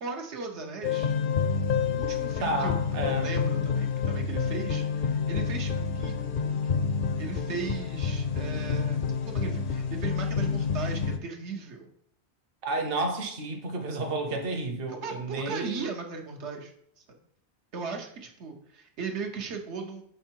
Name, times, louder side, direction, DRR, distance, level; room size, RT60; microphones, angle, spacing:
voice 1, 0.0-1.1 1.8-2.7 3.0-6.8 7.2-9.0 9.3-11.9 14.9-17.0 17.7-20.0, right 5 dB, 85° right, 3 dB, 1.2 m, -37 dB
sound 1, 0.8-11.2, left 6 dB, 60° left, 0.6 m, -28 dB
voice 2, 2.4-3.3 12.6-15.9, right 2 dB, 60° right, 4 dB, 1.0 m, -31 dB
6.9 x 3.6 x 4.5 m, 0.71 s
omnidirectional pair, 1.1 m